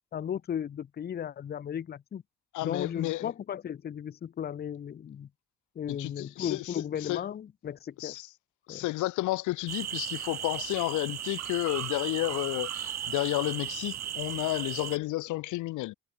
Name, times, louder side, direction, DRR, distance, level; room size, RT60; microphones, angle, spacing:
voice 1, 0.1-2.2 2.6-5.3 5.8-8.2 8.7-8.8, left 9 dB, 35° left, 0.5 m, -35 dB
voice 2, 2.5-3.3 5.9-6.7 7.0-7.2 8.0-8.3 8.7-15.9, left 18 dB, 80° left, 0.5 m, -31 dB
sound 1, 9.7-15.0, right 10 dB, 60° right, 1.7 m, -36 dB
cardioid pair, 90°, 30 cm